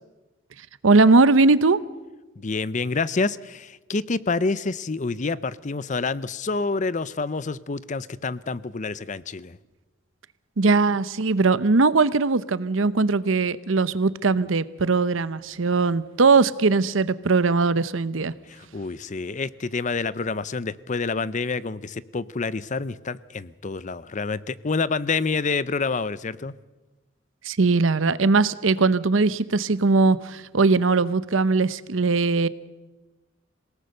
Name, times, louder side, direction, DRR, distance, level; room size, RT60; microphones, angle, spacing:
voice 1, 0.8-1.8 10.6-18.3 27.4-32.5, right 3 dB, 80° right, 16 dB, 0.8 m, -20 dB
voice 2, 2.4-9.6 18.5-26.5, left 4 dB, 40° left, 18 dB, 0.6 m, -28 dB
27.0 x 18.0 x 6.6 m, 1.1 s
head